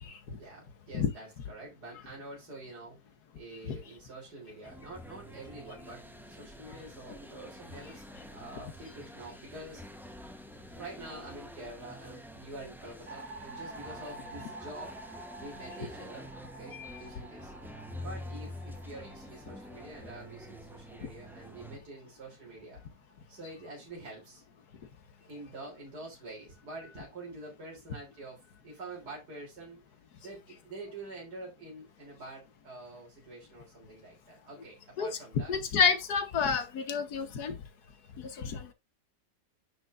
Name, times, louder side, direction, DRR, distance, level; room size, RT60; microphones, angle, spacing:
voice 1, 0.4-3.0 3.3-8.0 8.3-9.8 10.7-14.9 15.4-17.5 18.0-22.8 23.3-24.4 25.3-29.8 30.2-35.6, right 2 dB, 65° right, 3.9 m, -46 dB
sound 1, 4.6-21.8, equal, ahead, 0.5 m, -47 dB
sound 2, 13.1-23.4, right 2 dB, 40° right, 1.2 m, -50 dB
voice 2, 35.5-37.5 38.2-38.7, left 6 dB, 65° left, 1.6 m, -29 dB
9.9 x 6.1 x 2.5 m
omnidirectional pair, 1.8 m